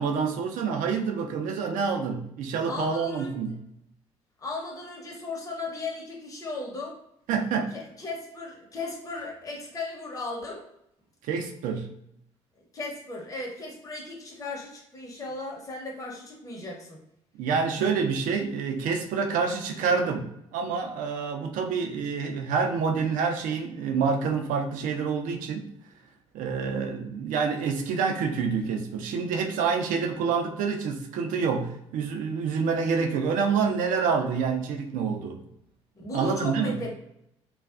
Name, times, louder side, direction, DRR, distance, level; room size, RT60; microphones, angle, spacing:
voice 1, 0.0-3.6 7.3-7.8 11.2-11.9 17.4-25.7 26.3-35.4 36.1-36.8, right 5 dB, 60° right, 5 dB, 0.5 m, -27 dB
voice 2, 2.6-3.3 4.4-7.0 7.7-10.6 12.6-17.0 36.0-36.9, left 3 dB, 20° left, -2 dB, 0.8 m, -36 dB
2.3 x 2.3 x 2.4 m, 0.78 s
figure-of-eight pair, 50°, 15 cm